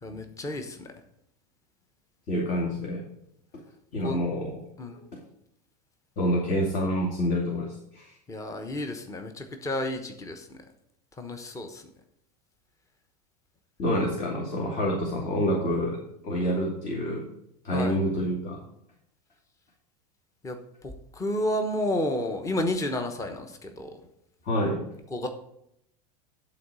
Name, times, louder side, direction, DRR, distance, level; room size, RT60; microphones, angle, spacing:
voice 1, 0.0-0.9 4.0-4.2 4.8-5.0 8.3-10.6 11.2-11.8 17.7-18.0 20.4-20.6 20.8-23.9 25.1-25.3, left 1 dB, 15° left, 6 dB, 1.1 m, -31 dB
voice 2, 2.3-3.0 3.5-3.6 3.9-4.6 4.9-5.2 6.2-8.1 13.8-16.0 16.2-17.2 17.6-18.6 24.4-24.8, equal, 40° left, -2 dB, 2.5 m, -27 dB
12.0 x 4.1 x 6.9 m, 0.76 s
supercardioid pair, 120°, 20 cm